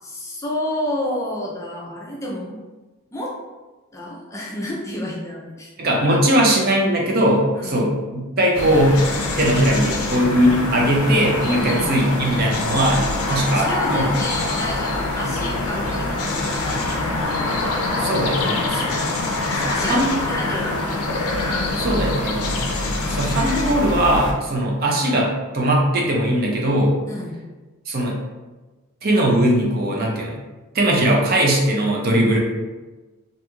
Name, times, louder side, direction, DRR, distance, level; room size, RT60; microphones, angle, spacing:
voice 1, 0.0-2.6 3.1-3.3 3.9-5.7 6.1-6.3 7.6-7.9 11.6-11.8 13.3-17.5 18.1-19.2 19.5-21.2 27.1-27.4, left 1 dB, 15° left, -4 dB, 0.4 m, -30 dB
voice 2, 5.8-9.0 9.4-13.0 13.3-14.1 18.0-18.8 19.9-20.2 21.8-22.5 23.1-26.9 27.9-28.2 29.0-30.4 30.7-32.4, right 1 dB, 45° right, -1 dB, 0.5 m, -19 dB
sound 1, 8.5-24.3, left 2 dB, 75° left, 0.4 m, -24 dB
2.9 x 2.6 x 2.3 m, 1.2 s
head